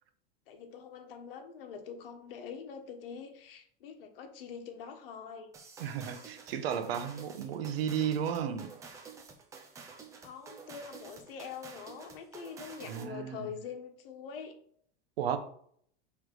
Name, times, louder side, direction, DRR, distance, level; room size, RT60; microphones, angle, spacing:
voice 1, 0.5-5.5 10.2-14.6, left 6 dB, 65° left, 1.3 m, -44 dB
sound 1, 5.5-13.2, right 5 dB, 10° right, 0.5 m, -50 dB
voice 2, 5.8-8.7 12.9-13.5 15.2-15.4, right 8 dB, 80° right, 1.0 m, -33 dB
6.3 x 3.6 x 4.7 m
supercardioid pair, 170°, 30 cm